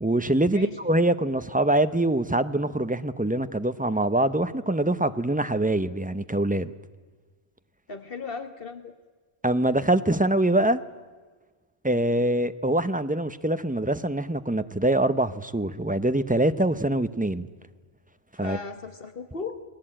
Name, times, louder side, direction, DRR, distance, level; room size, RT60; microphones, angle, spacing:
voice 1, 0.0-6.7 9.4-10.8 11.8-17.5 18.4-18.6, right 1 dB, 10° right, 0.6 m, -24 dB
voice 2, 7.9-8.9 18.4-19.6, left 4 dB, 60° left, 1.4 m, -36 dB
29.5 x 19.0 x 8.8 m
omnidirectional pair, 1.1 m